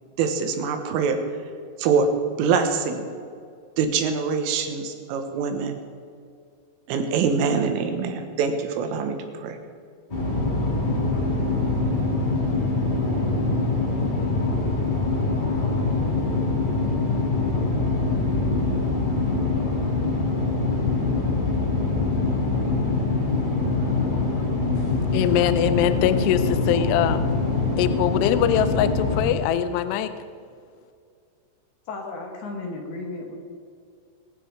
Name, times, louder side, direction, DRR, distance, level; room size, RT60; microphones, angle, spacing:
voice 1, 0.2-1.2 1.8-2.1 2.4-3.0 3.8-5.7 6.9-9.6, right 5 dB, 80° right, 3.7 m, -24 dB
sound 1, 10.1-29.2, left 3 dB, 30° left, 0.8 m, -24 dB
voice 2, 25.1-27.3 27.8-30.1, left 10 dB, 85° left, 2.4 m, -22 dB
voice 3, 31.9-33.4, left 3 dB, 65° left, 2.8 m, -34 dB
20.5 x 9.3 x 4.9 m
omnidirectional pair, 5.8 m